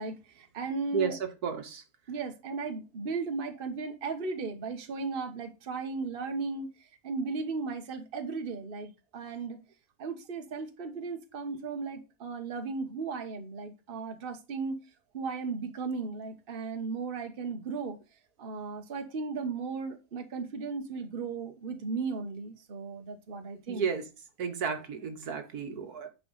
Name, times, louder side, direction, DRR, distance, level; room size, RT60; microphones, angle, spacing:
voice 1, 0.0-1.2 2.1-6.7 7.0-9.6 10.0-14.7 15.1-18.0 18.4-23.8, right 4 dB, 40° right, 1.3 m, -36 dB
voice 2, 0.9-1.8 23.7-24.0 24.4-26.1, right 6 dB, 75° right, 1.8 m, -32 dB
9.8 x 5.0 x 4.0 m
omnidirectional pair, 1.7 m